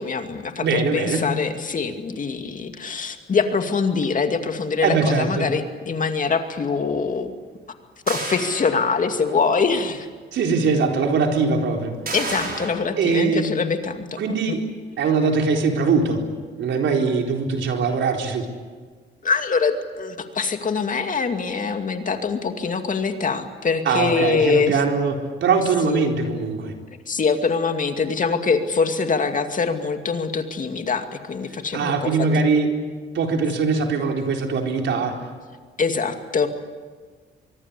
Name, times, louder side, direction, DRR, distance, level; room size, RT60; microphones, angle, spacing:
voice 1, 0.0-7.3 8.1-10.1 12.1-14.6 19.2-24.8 25.8-26.1 27.1-32.3 35.8-36.5, left 5 dB, 40° left, 6 dB, 2.4 m, -24 dB
voice 2, 0.6-1.3 4.8-5.5 10.3-11.9 13.0-13.5 14.2-14.7 15.0-16.2 16.6-18.5 23.9-26.7 31.7-32.8 33.1-35.2, right 4 dB, 70° right, 2 dB, 4.2 m, -21 dB
sound 1, 8.1-9.3 9.8-9.9 12.1-12.7, right 3 dB, 50° right, 7.0 m, -31 dB
24.0 x 23.5 x 8.4 m, 1.5 s
cardioid pair, 90°, 20 cm